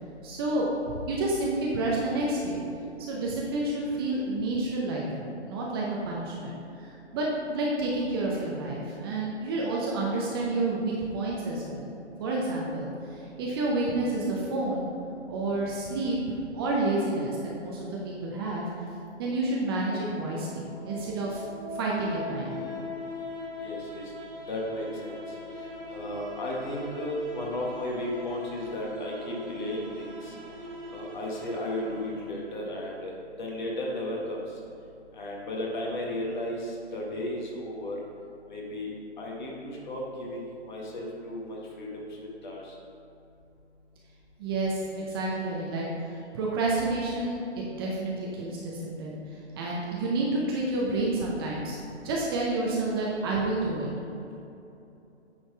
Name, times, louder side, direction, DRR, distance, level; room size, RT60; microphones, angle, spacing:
voice 1, 0.2-0.7 1.1-2.6 3.0-6.9 7.1-11.9 12.2-14.9 15.3-16.2 16.5-18.6 19.2-21.4 21.7-22.7 44.4-49.2 49.6-53.9, right 2 dB, 20° right, -4 dB, 0.7 m, -29 dB
sound 1, 20.1-32.9, left 1 dB, 40° right, 1.5 m, -41 dB
voice 2, 23.6-24.0 24.5-25.2 25.9-30.3 30.9-33.1 33.4-34.4 35.1-38.0 38.5-38.9 39.2-42.1 42.4-42.7, left 1 dB, 40° left, -2 dB, 1.6 m, -34 dB
9.0 x 4.1 x 4.5 m, 2.8 s
figure-of-eight pair, 135°, 34 cm